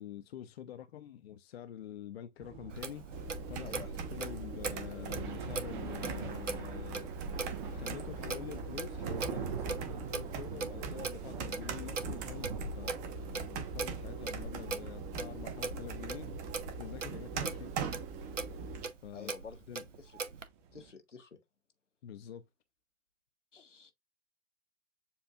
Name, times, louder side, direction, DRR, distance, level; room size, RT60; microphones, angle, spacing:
voice 1, 0.0-16.5 16.8-17.9 19.0-19.3 19.7-19.9 22.0-22.4, left 10 dB, 60° left, 0.5 m, -47 dB
sound 1, 2.4-20.9, right 6 dB, 40° right, 1.0 m, -46 dB
Clock, 2.7-20.5, right 4 dB, 85° right, 0.6 m, -42 dB
sound 2, 3.1-18.9, right 4 dB, 20° right, 0.6 m, -41 dB
voice 2, 19.1-19.6 20.7-21.4 23.5-23.9, left 5 dB, 80° left, 0.9 m, -49 dB
6.9 x 2.6 x 2.3 m
figure-of-eight pair, 105°, 36 cm